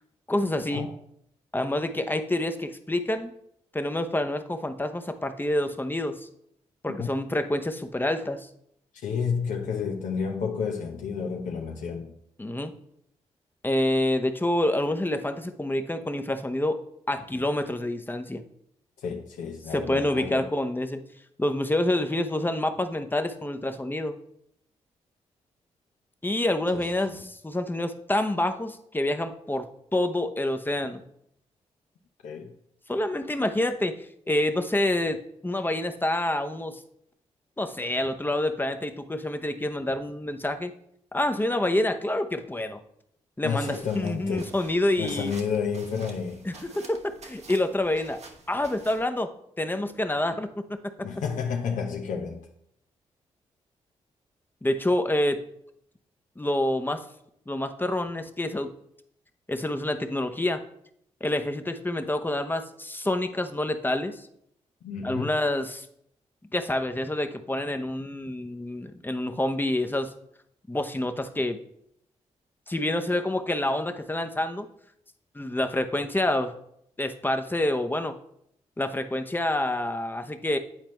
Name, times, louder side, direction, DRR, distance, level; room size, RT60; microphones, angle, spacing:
voice 1, 0.3-0.9 1.5-3.3 3.7-6.3 6.8-8.5 12.4-12.7 13.6-16.8 17.1-18.4 19.7-21.0 21.4-24.2 26.2-29.7 29.9-31.0 32.9-36.8 37.6-40.7 41.1-42.8 43.4-45.3 46.4-48.2 48.5-49.3 49.6-50.8 54.6-55.4 56.4-57.0 57.5-58.7 59.5-60.6 61.2-64.3 65.0-65.9 66.5-70.1 70.7-71.6 72.7-74.7 75.3-76.5 77.0-78.2 78.8-80.6, left 1 dB, 15° left, 0.7 m, -27 dB
voice 2, 9.0-12.1 19.0-20.5 27.1-27.2 32.2-32.5 43.4-44.5 45.0-46.5 51.0-52.5 64.8-65.3, left 6 dB, 75° left, 0.7 m, -31 dB
sound 1, 43.6-49.0, right 3 dB, 55° right, 1.0 m, -48 dB
8.9 x 4.3 x 3.1 m
supercardioid pair, 45°, 13 cm